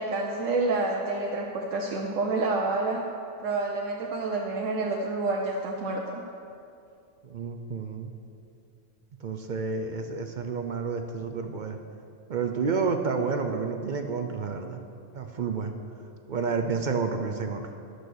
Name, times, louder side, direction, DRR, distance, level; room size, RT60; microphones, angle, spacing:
voice 1, 0.0-3.1 3.4-6.2, right 3 dB, 70° right, -1 dB, 1.2 m, -28 dB
voice 2, 7.2-8.1 9.2-11.8 12.3-14.8 15.1-15.7 16.3-17.6, right 5 dB, 55° right, 5 dB, 0.5 m, -30 dB
11.0 x 6.4 x 6.2 m, 2.5 s
omnidirectional pair, 1.4 m